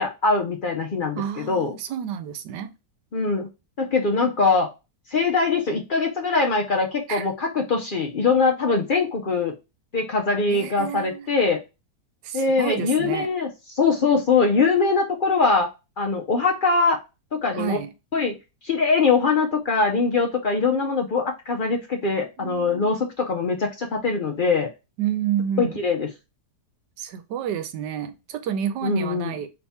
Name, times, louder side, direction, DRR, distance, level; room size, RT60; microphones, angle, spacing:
voice 1, 0.0-1.8 3.1-3.5 3.8-4.7 5.1-9.5 9.9-11.6 12.3-13.5 13.8-15.7 16.0-17.0 17.3-17.8 18.1-18.3 18.6-24.7 25.6-26.1 28.8-29.3, left 4 dB, 65° left, 0.5 m, -22 dB
voice 2, 1.2-2.7 7.1-7.3 10.5-11.3 12.2-13.3 17.5-17.9 22.1-22.9 25.0-25.8 27.0-29.5, right 9 dB, 90° right, 1.3 m, -30 dB
4.1 x 3.2 x 3.5 m
omnidirectional pair, 1.8 m